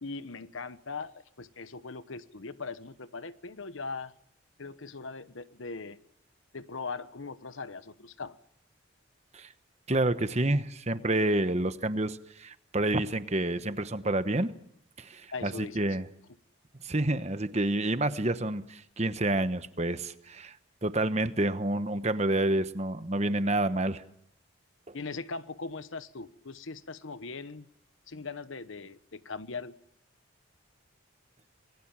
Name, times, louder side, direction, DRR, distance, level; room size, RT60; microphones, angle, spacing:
voice 1, 0.0-4.1 4.6-6.0 6.5-8.4 15.3-15.9 24.9-27.7 28.1-29.8, left 4 dB, 70° left, 14 dB, 1.1 m, -40 dB
voice 2, 9.9-14.5 15.0-16.1 16.8-20.5 20.8-24.0 24.9-25.0, right 1 dB, 30° right, 11 dB, 1.1 m, -28 dB
27.0 x 21.0 x 7.4 m, 0.72 s
head